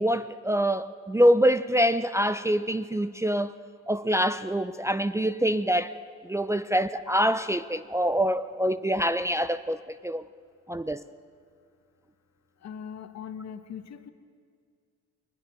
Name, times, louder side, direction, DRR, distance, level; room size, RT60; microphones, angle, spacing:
voice 1, 0.0-3.5 3.9-5.9 6.2-10.2 10.7-11.0, equal, 10° right, 0.5 m, -25 dB
voice 2, 12.6-14.1, left 7 dB, 60° left, 1.5 m, -40 dB
21.5 x 20.0 x 6.1 m
cardioid pair, 90°, 30 cm